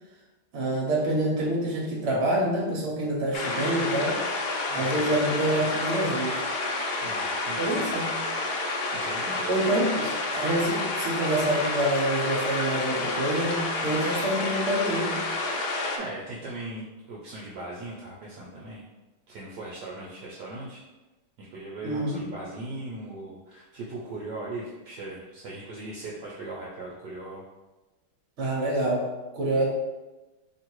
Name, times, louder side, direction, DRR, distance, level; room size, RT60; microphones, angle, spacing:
voice 1, 0.5-4.2 4.7-6.4 7.6-8.2 9.5-10.0 10.3-15.2 21.8-22.3 28.4-29.1 29.3-29.7, right 1 dB, 45° right, -3 dB, 1.0 m, -26 dB
sound 1, 3.3-16.0, left 2 dB, 80° left, 1.4 m, -29 dB
voice 2, 4.7-5.3 7.0-8.0 8.8-9.5 9.9-10.1 16.0-18.8 19.3-20.8 21.4-27.4, right 2 dB, 65° right, -5 dB, 1.1 m, -39 dB
3.1 x 2.8 x 4.5 m, 1.1 s
omnidirectional pair, 2.3 m